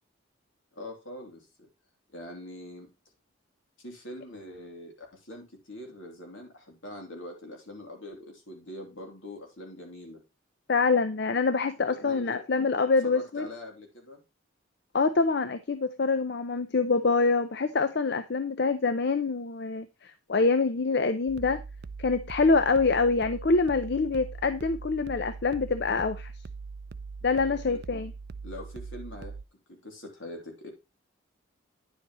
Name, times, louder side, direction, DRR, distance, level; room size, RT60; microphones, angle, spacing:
voice 1, 0.7-1.5 2.1-2.9 3.8-10.2 11.9-12.4 13.0-14.2 27.4-27.8 28.4-29.3 29.8-30.7, left 1 dB, 75° left, 3.1 m, -43 dB
voice 2, 10.7-13.5 14.9-21.6 22.0-26.3 27.2-28.1, left 4 dB, 55° left, 0.5 m, -25 dB
sound 1, 21.3-29.4, right 4 dB, 50° right, 0.4 m, -41 dB
10.0 x 7.3 x 3.1 m
head